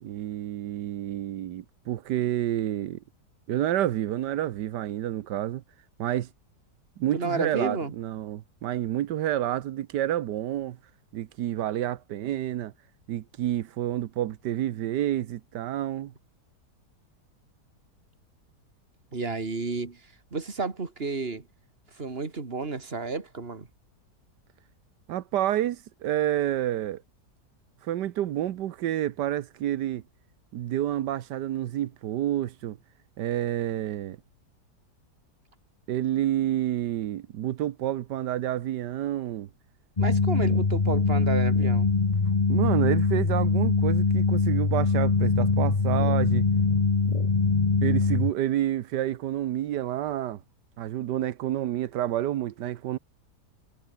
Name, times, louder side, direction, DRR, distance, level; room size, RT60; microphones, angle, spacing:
voice 1, 0.0-3.0 3.5-5.6 6.0-6.3 7.0-10.8 11.1-12.7 13.1-16.1 25.1-27.0 27.8-30.0 30.5-32.8 33.2-34.2 35.9-39.5 42.5-46.5 47.8-50.4 50.8-53.0, right 12 dB, 90° right, 1.5 m, -29 dB
voice 2, 7.1-7.9 19.1-20.0 20.3-21.4 21.9-23.7 40.0-41.9, right 4 dB, 35° right, 2.7 m, -31 dB
sound 1, 40.0-48.3, left 4 dB, 25° left, 1.3 m, -23 dB
omnidirectional pair, 1.8 m